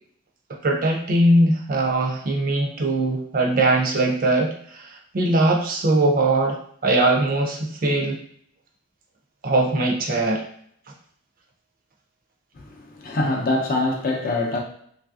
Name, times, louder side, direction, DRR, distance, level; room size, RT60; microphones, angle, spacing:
voice 1, 0.6-6.6 6.8-8.2 9.4-10.4, right 2 dB, 40° right, 1 dB, 0.5 m, -21 dB
voice 2, 12.6-14.6, left 2 dB, 45° left, 1 dB, 0.5 m, -24 dB
3.2 x 2.5 x 2.4 m, 0.65 s
head